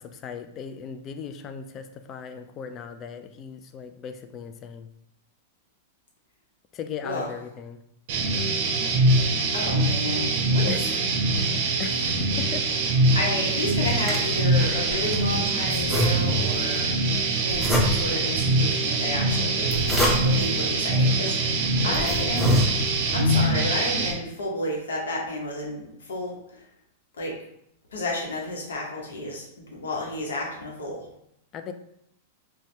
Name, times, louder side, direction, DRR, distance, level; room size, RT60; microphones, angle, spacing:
voice 1, 0.0-4.9 6.7-7.8 10.7-10.9 11.8-12.7 21.8-22.6 31.5-31.7, left 6 dB, 35° left, 8 dB, 0.3 m, -38 dB
voice 2, 7.0-7.3 9.5-11.0 13.1-16.9 17.4-22.6 23.1-26.6 27.2-27.4 27.9-31.1, left 1 dB, 85° left, -1 dB, 0.9 m, -31 dB
sound 1, 8.1-24.1, right 2 dB, 60° right, 0.6 m, -23 dB
sound 2, 13.5-15.2 15.7-16.6 17.5-18.3 19.4-20.5 21.3-21.4 21.8-23.1, equal, ahead, 0.8 m, -27 dB
2.6 x 2.2 x 3.1 m, 0.75 s
hypercardioid pair, 115°, 0 cm